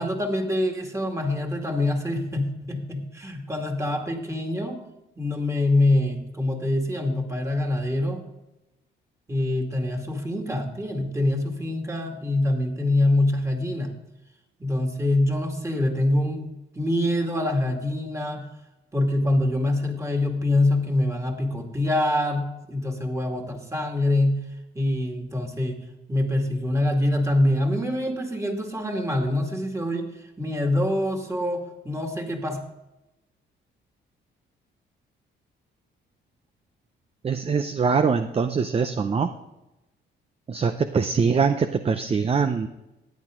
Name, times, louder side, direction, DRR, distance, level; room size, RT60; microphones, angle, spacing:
voice 1, 0.0-4.8 5.2-8.2 9.3-13.9 14.6-18.5 18.9-24.4 24.7-25.8 26.1-32.6, left 1 dB, 15° right, 2 dB, 2.2 m, -25 dB
voice 2, 37.2-39.3 40.5-42.7, right 5 dB, 30° right, 9 dB, 0.6 m, -23 dB
14.0 x 9.2 x 3.7 m, 0.97 s
cardioid pair, 90°, 20 cm